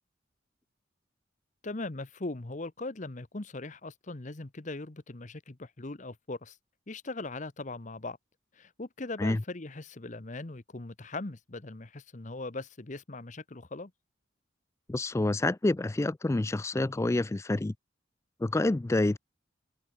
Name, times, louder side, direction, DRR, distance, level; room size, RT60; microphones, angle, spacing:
voice 1, 1.6-6.6 6.9-8.2 8.5-13.9, left 2 dB, 40° left, 1.0 m, -40 dB
voice 2, 14.9-17.7 18.4-19.2, left 2 dB, 15° left, 0.3 m, -28 dB
head